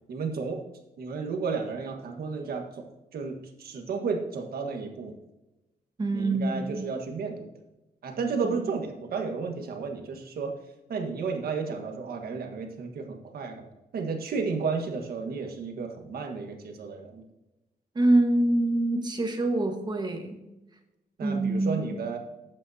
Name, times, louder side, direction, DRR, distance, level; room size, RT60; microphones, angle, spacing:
voice 1, 0.1-0.6 1.0-2.8 3.1-5.2 6.1-7.5 8.0-10.5 10.9-13.6 13.9-17.2 21.2-22.2, right 4 dB, 75° right, 4 dB, 1.5 m, -32 dB
voice 2, 6.0-6.8 8.4-8.6 17.9-20.4 21.2-21.9, right 2 dB, 25° right, 5 dB, 1.4 m, -25 dB
12.0 x 8.2 x 2.8 m, 1.0 s
wide cardioid pair, 125°, 16 cm